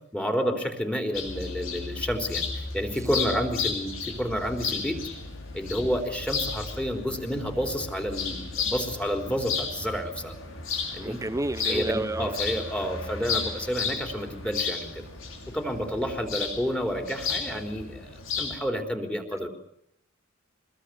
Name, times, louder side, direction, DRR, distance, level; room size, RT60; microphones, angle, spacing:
voice 1, 0.1-5.0 5.5-10.4 10.9-11.2 11.6-14.9 15.5-18.1 18.4-19.5, equal, 5° left, 3.8 m, -30 dB
sound 1, 1.1-18.6, left 5 dB, 85° left, 6.6 m, -33 dB
voice 2, 11.0-12.3 19.3-19.5, right 1 dB, 15° right, 0.9 m, -31 dB
25.0 x 21.5 x 8.2 m
head